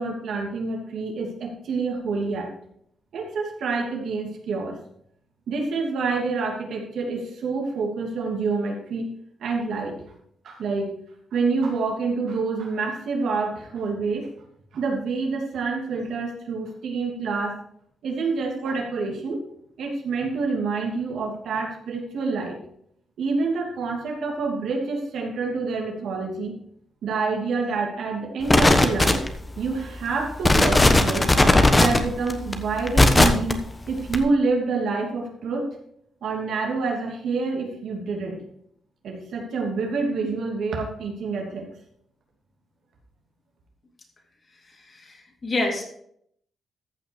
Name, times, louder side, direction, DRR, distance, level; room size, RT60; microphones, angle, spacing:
voice 1, 0.0-2.5 3.1-4.8 5.5-9.1 9.4-10.0 10.4-11.0 11.3-14.3 14.7-17.6 18.0-19.4 19.8-22.6 23.2-26.6 27.0-29.2 29.6-31.3 31.7-35.7 36.2-38.4 39.0-41.7, right 4 dB, 75° right, 1 dB, 2.9 m, -27 dB
sound 1, 28.5-29.5 30.0-30.1 30.4-33.5 34.1-34.2, left 2 dB, 20° left, 1.2 m, -17 dB
voice 2, 44.7-45.8, left 2 dB, 40° left, 0 dB, 3.3 m, -28 dB
14.5 x 5.8 x 4.9 m, 0.70 s
cardioid pair, 90°, 0 cm